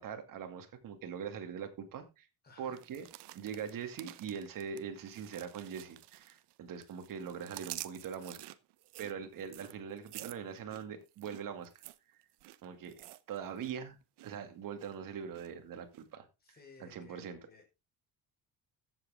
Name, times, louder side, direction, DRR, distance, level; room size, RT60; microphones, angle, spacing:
voice 1, 0.0-2.3 2.6-3.1 3.3-8.5 9.0-11.8 12.6-17.4, right 7 dB, 55° right, 7 dB, 2.5 m, -42 dB
voice 2, 2.4-2.8 16.4-17.7, left 3 dB, 25° left, 3 dB, 4.6 m, -57 dB
sound 1, 2.7-6.5 6.8-13.8 14.0-14.4 14.8-15.5 15.9-16.0, right 16 dB, 80° right, 1.0 m, -50 dB
14.5 x 8.0 x 3.7 m, 0.27 s
cardioid pair, 155°, 40 cm